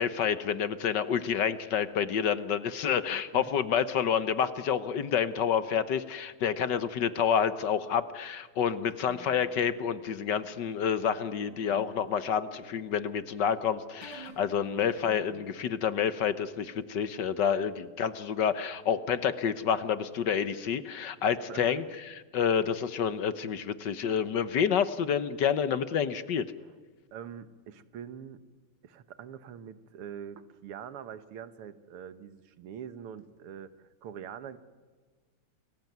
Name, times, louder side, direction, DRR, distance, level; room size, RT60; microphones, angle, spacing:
voice 1, 0.0-26.5, left 8 dB, 60° left, 14 dB, 1.4 m, -29 dB
sound 1, 8.9-15.6, equal, 55° right, 7.0 m, -52 dB
voice 2, 21.5-21.8 26.6-26.7 27.1-28.4 28.8-34.6, right 8 dB, 85° right, 14 dB, 2.1 m, -44 dB
29.0 x 20.5 x 9.4 m, 1.5 s
omnidirectional pair, 2.4 m